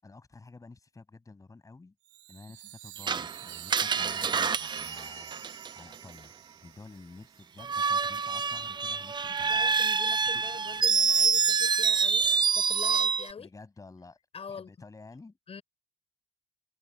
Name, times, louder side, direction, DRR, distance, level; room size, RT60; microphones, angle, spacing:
voice 1, 0.0-1.9 2.3-5.3 5.7-6.3 6.6-9.6 10.3-10.5 13.4-14.2 14.5-15.4, left 3 dB, 20° left, 7.6 m, -50 dB
Chime, 2.0-7.6, right 16 dB, 85° right, 3.4 m, -47 dB
Screech, 3.1-5.9 7.6-13.3, right 5 dB, 25° right, 0.6 m, -27 dB
voice 2, 9.5-12.3 12.5-13.5 14.3-14.7 15.5-15.6, left 6 dB, 35° left, 7.9 m, -44 dB
cardioid pair, 110°, 17 cm